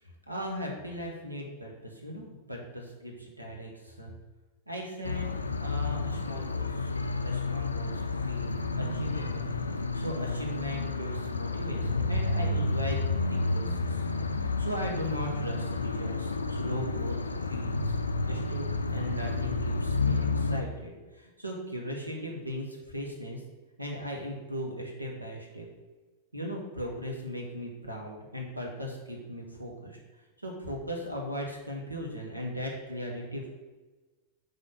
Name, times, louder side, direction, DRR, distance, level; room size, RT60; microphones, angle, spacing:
voice 1, 0.0-4.2 4.7-5.3 5.6-6.9 7.2-9.5 9.9-14.1 14.6-17.2 17.4-17.9 18.3-23.4 23.8-25.7 26.3-30.0 30.4-33.5, equal, 85° right, 0 dB, 1.4 m, -38 dB
sound 1, 5.0-20.6, left 3 dB, 80° left, 0.4 m, -30 dB
6.3 x 3.6 x 5.8 m, 1.2 s
figure-of-eight pair, 90°, 0 cm